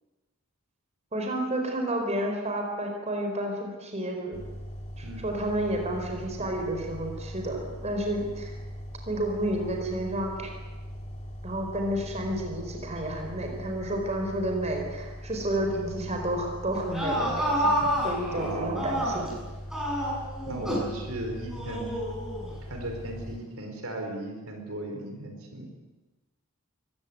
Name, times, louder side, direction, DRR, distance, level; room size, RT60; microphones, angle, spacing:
voice 1, 1.1-4.4 5.0-8.5 9.1-10.5 11.4-17.7 18.0-19.3, right 1 dB, 30° right, 2 dB, 4.6 m, -30 dB
sound 1, 4.3-23.4, equal, 30° left, 4.0 m, -40 dB
sound 2, 16.7-19.4 19.7-20.9 21.5-22.5, equal, ahead, 7.0 m, -29 dB
voice 2, 18.3-18.9 20.5-21.9 22.6-25.7, right 1 dB, 75° right, 3 dB, 4.4 m, -36 dB
23.5 x 16.0 x 9.4 m, 1.2 s
head